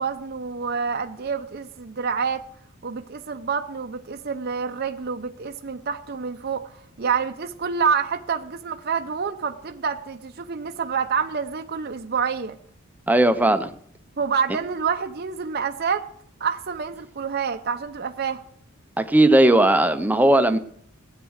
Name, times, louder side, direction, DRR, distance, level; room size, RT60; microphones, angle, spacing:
voice 1, 0.0-2.4 2.8-6.6 7.0-12.5 14.2-16.1 16.4-18.4, right 6 dB, 45° right, 5 dB, 0.6 m, -27 dB
voice 2, 13.1-13.7 19.0-20.6, right 1 dB, 10° right, 9 dB, 0.7 m, -17 dB
16.0 x 9.1 x 6.4 m, 0.65 s
head